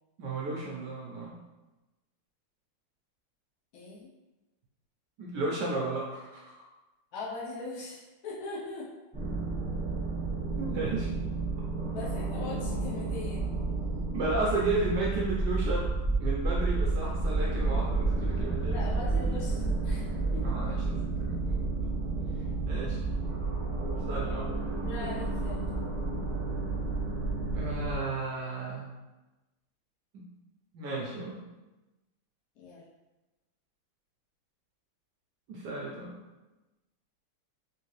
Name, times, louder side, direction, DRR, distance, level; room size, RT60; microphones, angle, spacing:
voice 1, 0.2-1.4 5.2-6.6 10.6-11.2 14.1-15.9 16.2-18.8 20.4-22.1 22.7-23.0 23.8-24.5 27.5-28.9 30.7-31.4 35.5-36.2, right 3 dB, 75° right, -3 dB, 1.0 m, -33 dB
voice 2, 3.7-4.1 7.1-8.9 10.7-10.8 11.9-13.6 18.7-20.4 24.8-25.7 32.6-32.8, left 3 dB, 60° left, -7 dB, 0.9 m, -40 dB
sound 1, 9.1-28.0, right 3 dB, 5° right, 1.0 m, -31 dB
3.5 x 3.1 x 3.1 m, 1.1 s
omnidirectional pair, 2.3 m